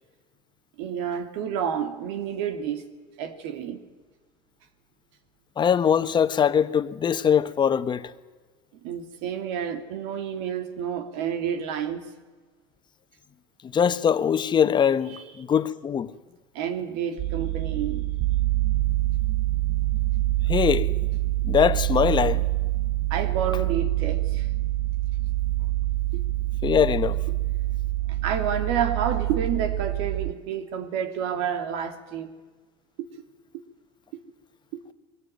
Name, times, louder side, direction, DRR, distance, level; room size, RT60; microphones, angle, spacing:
voice 1, 0.8-2.9 3.2-3.8 8.8-12.1 15.1-15.3 16.5-18.1 23.1-24.5 28.1-32.3 33.0-33.1 34.7-34.8, right 8 dB, 80° right, 2.9 m, -29 dB
voice 2, 5.6-8.1 13.6-16.1 20.5-20.9 21.4-22.4 26.6-27.2, left 8 dB, 35° left, 1.3 m, -22 dB
sound 1, 17.2-30.3, right 17 dB, 55° right, 0.6 m, -26 dB
23.5 x 18.5 x 9.4 m
supercardioid pair, 105°, 14 cm